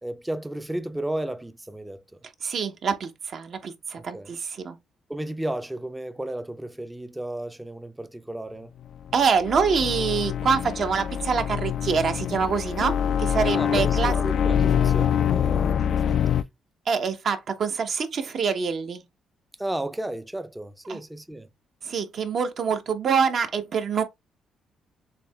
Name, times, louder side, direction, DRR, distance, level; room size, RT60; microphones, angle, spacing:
voice 1, 0.0-2.0 4.1-4.3 5.1-8.7 13.5-16.4 19.6-21.5, right 1 dB, 10° right, 0.5 m, -33 dB
voice 2, 2.4-4.8 9.1-14.1 16.9-19.0 20.9-21.0 21.8-24.0, right 6 dB, 55° right, 0.9 m, -25 dB
sound 1, 9.0-16.4, left 8 dB, 65° left, 0.3 m, -24 dB
7.0 x 2.8 x 2.3 m
cardioid pair, 90°, 0 cm